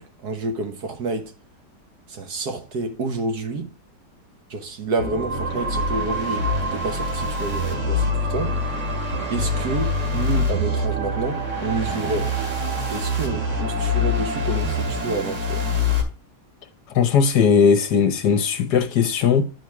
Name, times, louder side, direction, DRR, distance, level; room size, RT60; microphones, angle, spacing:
voice 1, 0.0-1.3 2.1-3.7 4.5-8.5 9.3-12.3 12.9-15.7, right 3 dB, 65° right, 1.8 m, -29 dB
sound 1, 5.0-16.0, left 1 dB, 80° right, 2.8 m, -25 dB
voice 2, 16.9-19.5, left 6 dB, 65° left, 1.4 m, -18 dB
10.5 x 4.6 x 4.7 m
omnidirectional pair, 1.9 m